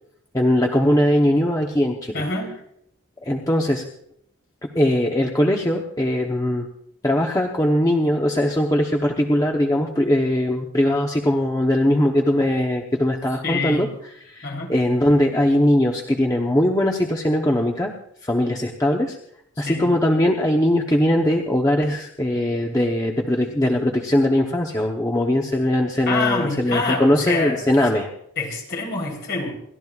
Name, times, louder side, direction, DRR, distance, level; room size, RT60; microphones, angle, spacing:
voice 1, 0.3-2.2 3.2-3.8 4.6-6.7 7.0-13.9 14.2-17.9 18.2-19.2 19.6-28.1, left 1 dB, 15° left, 0 dB, 0.8 m, -20 dB
voice 2, 2.1-2.5 13.4-13.9 14.4-14.7 19.6-20.0 26.1-27.6 28.4-29.5, left 3 dB, 50° left, -1 dB, 3.7 m, -26 dB
28.5 x 12.5 x 2.4 m, 0.71 s
head